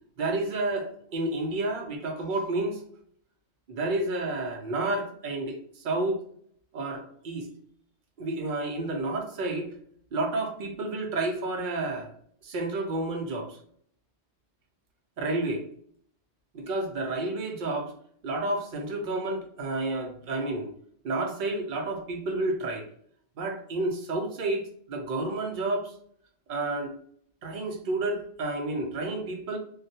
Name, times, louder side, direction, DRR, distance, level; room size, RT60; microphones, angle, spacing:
voice 1, 0.2-2.8 3.7-6.2 6.7-7.5 8.2-9.7 10.1-12.1 12.4-13.6 15.2-15.7 16.5-17.9 18.2-20.7 21.0-22.9 23.4-25.9 26.5-26.9 27.4-29.6, right 2 dB, 55° right, 2 dB, 0.6 m, -30 dB
2.3 x 2.1 x 2.7 m, 0.63 s
omnidirectional pair, 1.2 m